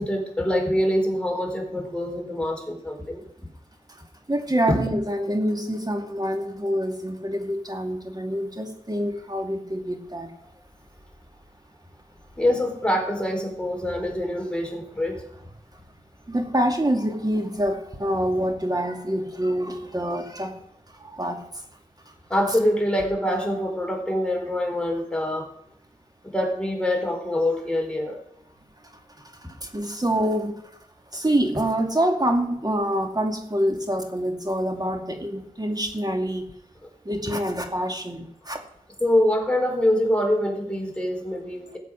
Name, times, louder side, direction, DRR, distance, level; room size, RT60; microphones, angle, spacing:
voice 1, 0.0-3.2 4.7-4.8 12.4-15.2 22.3-25.5 26.2-28.2 39.0-41.8, left 1 dB, 5° left, 2 dB, 4.3 m, -25 dB
voice 2, 4.3-10.5 16.3-20.6 20.9-21.6 22.1-22.2 29.2-29.3 29.6-30.5 31.1-36.4 37.0-38.6, right 1 dB, 30° right, 4 dB, 2.3 m, -26 dB
17.5 x 8.0 x 6.3 m, 0.75 s
wide cardioid pair, 55°, 14 cm